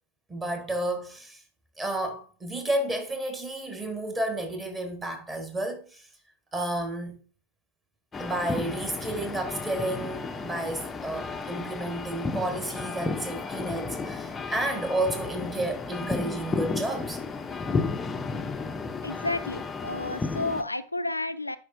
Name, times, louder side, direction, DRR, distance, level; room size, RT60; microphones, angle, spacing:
voice 1, 0.3-1.4 1.8-6.1 6.5-7.2 8.2-17.2, right 1 dB, 15° right, 1.5 m, -31 dB
sound 1, 8.1-20.6, left 4 dB, 15° left, 0.5 m, -33 dB
voice 2, 19.0-21.6, left 2 dB, 85° left, 0.3 m, -31 dB
10.0 x 4.9 x 2.6 m
figure-of-eight pair, 90°, 0 cm